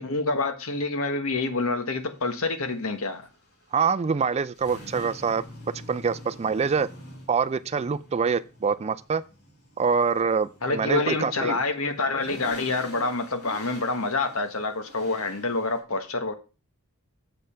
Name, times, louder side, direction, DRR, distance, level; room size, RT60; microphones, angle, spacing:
voice 1, 0.0-3.2 10.6-16.3, left 3 dB, 70° left, 1.4 m, -27 dB
sound 1, 1.6-15.8, equal, 90° left, 5.3 m, -47 dB
voice 2, 3.7-5.4 5.9-6.9 7.3-9.2 9.8-11.6, right 5 dB, 30° right, 0.3 m, -25 dB
7.8 x 5.3 x 5.7 m
head